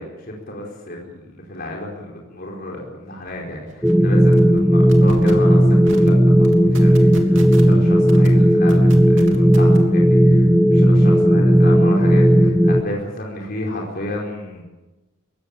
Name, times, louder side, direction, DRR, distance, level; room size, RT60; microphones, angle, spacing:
voice 1, 0.0-14.6, left 1 dB, 45° left, -2 dB, 4.8 m, -32 dB
sound 1, 3.3-3.4 3.7-3.9 4.3-4.6 4.9-5.3 5.8-6.1 6.4-7.7 8.1-8.3 8.7-9.8, right 2 dB, 60° right, 3.4 m, -36 dB
sound 2, 3.8-12.8, equal, 5° right, 0.8 m, -14 dB
23.0 x 17.5 x 8.7 m, 1.1 s
head